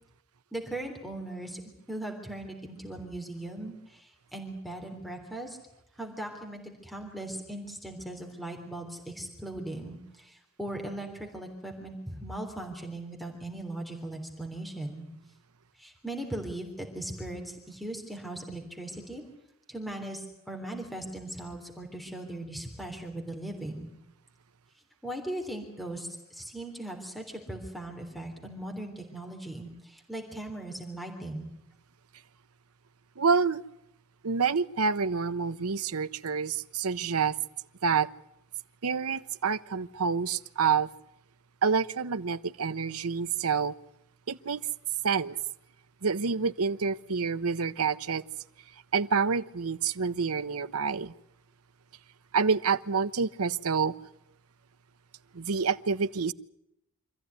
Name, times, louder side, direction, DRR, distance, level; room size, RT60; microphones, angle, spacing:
voice 1, 0.5-1.6 1.9-5.6 6.0-15.0 15.8-19.2 19.7-23.9 25.0-31.5, right 1 dB, ahead, 3.4 m, -39 dB
voice 2, 33.2-33.6 34.2-37.3 37.8-38.1 38.8-40.9 41.6-43.7 44.3-44.6 45.0-45.4 46.0-48.2 48.9-51.1 52.3-53.9 55.3-56.3, right 5 dB, 80° right, 0.8 m, -28 dB
25.5 x 14.5 x 9.5 m
head